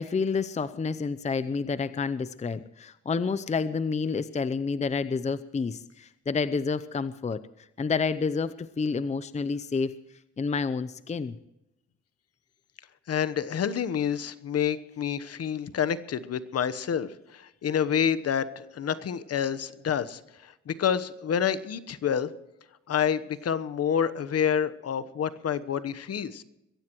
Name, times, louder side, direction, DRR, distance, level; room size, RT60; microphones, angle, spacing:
voice 1, 0.0-7.4 7.8-10.0 10.4-11.4, left 5 dB, 25° left, 14 dB, 0.6 m, -29 dB
voice 2, 13.1-22.3 22.9-26.4, left 8 dB, 55° left, 13 dB, 1.1 m, -28 dB
22.5 x 16.0 x 3.1 m, 0.89 s
cardioid pair, 90°, 30 cm